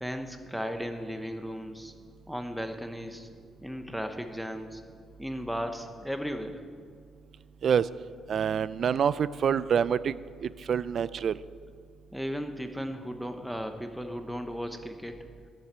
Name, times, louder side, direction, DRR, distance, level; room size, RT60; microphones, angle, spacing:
voice 1, 0.0-1.9 2.3-3.3 3.6-4.8 5.2-6.6 12.1-15.3, equal, ahead, 6 dB, 1.0 m, -35 dB
voice 2, 8.3-11.4, right 7 dB, 55° right, 17 dB, 0.4 m, -27 dB
14.0 x 7.5 x 8.2 m, 2.1 s
cardioid pair, 90°, 0 cm